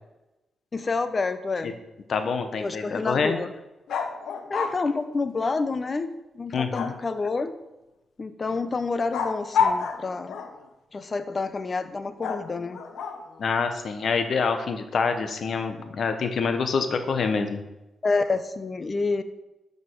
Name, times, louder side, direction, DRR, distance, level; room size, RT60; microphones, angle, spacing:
voice 1, 0.7-1.8 2.6-3.5 4.5-7.6 8.2-10.4 10.9-12.8 18.0-19.2, left 3 dB, 40° left, 11 dB, 0.8 m, -28 dB
voice 2, 2.1-3.4 6.5-6.9 13.4-17.6, left 5 dB, 65° left, 7 dB, 1.2 m, -26 dB
sound 1, 3.9-4.8 6.7-7.3 9.1-10.7 12.2-13.4, left 6 dB, 85° left, 0.9 m, -29 dB
12.5 x 5.5 x 4.7 m, 0.99 s
cardioid pair, 80°, 0 cm